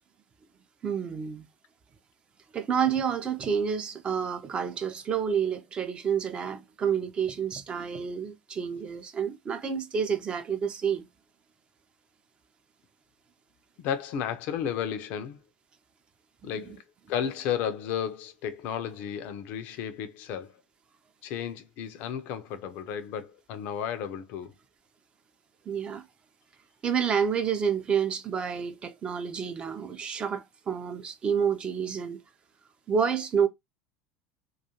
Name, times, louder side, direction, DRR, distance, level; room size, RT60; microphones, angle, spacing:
voice 1, 0.8-1.5 2.5-11.1 16.5-16.8 25.7-26.0 26.8-32.2 32.9-33.5, right 7 dB, 30° right, 0.4 m, -29 dB
voice 2, 13.8-15.4 16.4-16.8 17.1-20.5 21.2-24.5, left 8 dB, 50° left, 0.4 m, -33 dB
2.3 x 2.3 x 2.7 m
figure-of-eight pair, 75°, 4 cm